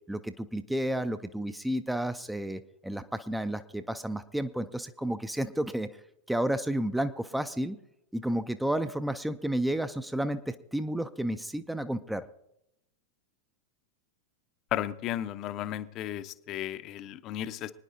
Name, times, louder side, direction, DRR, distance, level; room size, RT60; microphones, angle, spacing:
voice 1, 0.1-5.9 6.3-7.8 8.1-12.2, right 1 dB, 5° right, 11 dB, 0.5 m, -31 dB
voice 2, 14.7-17.7, left 12 dB, 35° left, 12 dB, 0.6 m, -34 dB
25.5 x 9.8 x 2.7 m, 0.81 s
figure-of-eight pair, 90°, 0 cm